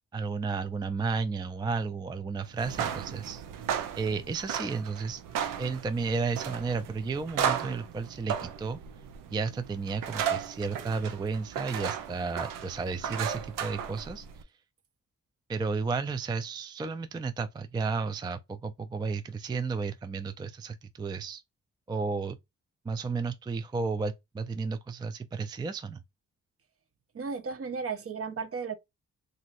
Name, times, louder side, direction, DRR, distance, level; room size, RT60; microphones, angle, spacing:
voice 1, 0.1-3.4 4.0-5.2 5.6-8.8 9.3-14.4 15.5-21.4 21.9-22.4 22.8-26.0, right 4 dB, 15° right, 0.3 m, -33 dB
sound 1, 2.5-14.4, right 8 dB, 90° right, 0.5 m, -35 dB
voice 2, 27.1-28.8, right 5 dB, 45° right, 0.6 m, -34 dB
3.1 x 2.6 x 2.5 m
cardioid pair, 50°, 31 cm